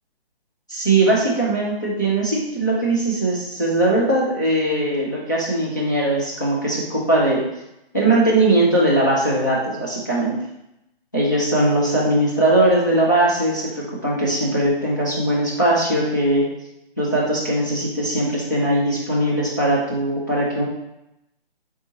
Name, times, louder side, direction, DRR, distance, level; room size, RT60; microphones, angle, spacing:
voice 1, 0.7-7.4 7.9-10.4 11.1-16.5 17.0-20.6, right 1 dB, 20° left, -7 dB, 0.3 m, -20 dB
4.2 x 3.5 x 2.7 m, 0.87 s
hypercardioid pair, 155°, 30 cm